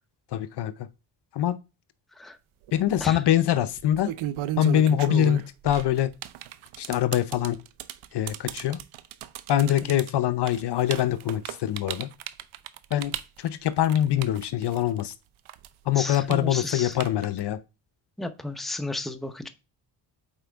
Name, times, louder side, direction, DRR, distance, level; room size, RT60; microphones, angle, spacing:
voice 1, 0.3-0.9 1.3-1.6 2.7-4.1 4.6-6.1 6.8-7.6 8.1-8.8 9.5-12.1 12.9-13.1 13.4-15.1 15.9-17.6, left 11 dB, 60° left, 0.7 m, -24 dB
sound 1, 2.7-3.0 3.8-15.1 15.5-17.5, right 12 dB, 85° right, 0.7 m, -35 dB
voice 2, 9.6-9.9 16.0-17.0 18.2-19.5, left 2 dB, ahead, 0.7 m, -33 dB
8.8 x 4.4 x 3.5 m
cardioid pair, 100°, 46 cm